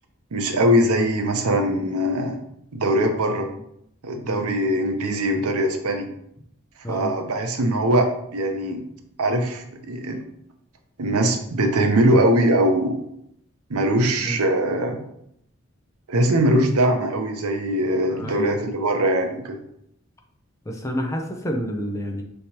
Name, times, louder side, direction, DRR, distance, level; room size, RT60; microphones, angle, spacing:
voice 1, 0.3-2.4 2.7-3.5 4.0-6.1 6.9-8.8 9.2-10.2 11.0-13.0 13.7-15.0 16.1-19.6, right 1 dB, 85° right, 5 dB, 0.7 m, -21 dB
voice 2, 18.1-18.7 20.7-22.2, equal, 15° left, 2 dB, 0.5 m, -29 dB
5.5 x 3.3 x 2.9 m, 0.73 s
head